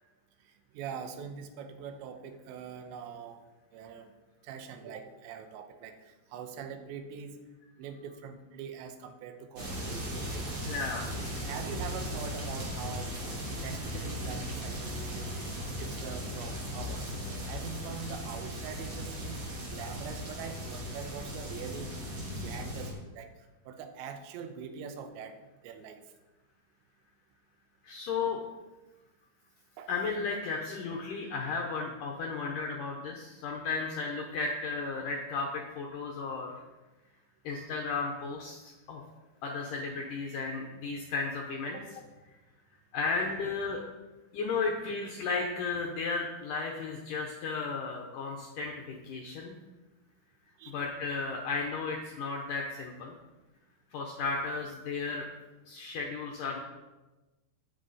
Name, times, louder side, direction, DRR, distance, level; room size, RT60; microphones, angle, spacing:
voice 1, 0.4-3.4 3.7-4.1 4.4-7.4 7.8-10.5 11.4-13.1 13.6-15.3 15.8-17.1 17.5-22.0 22.4-23.3 23.7-26.0 29.8-29.9 41.7-41.8 50.6-50.8, right 7 dB, 85° right, 8 dB, 3.1 m, -43 dB
sound 1, 9.6-22.9, equal, 35° right, 2.6 m, -37 dB
voice 2, 10.7-11.1 27.8-28.4 29.9-36.6 37.4-39.0 39.4-41.8 42.9-43.8 44.3-49.5 50.7-53.1 53.9-55.3 55.7-56.6, left 4 dB, 80° left, 1 dB, 1.9 m, -34 dB
13.0 x 8.5 x 4.1 m, 1.1 s
omnidirectional pair, 5.2 m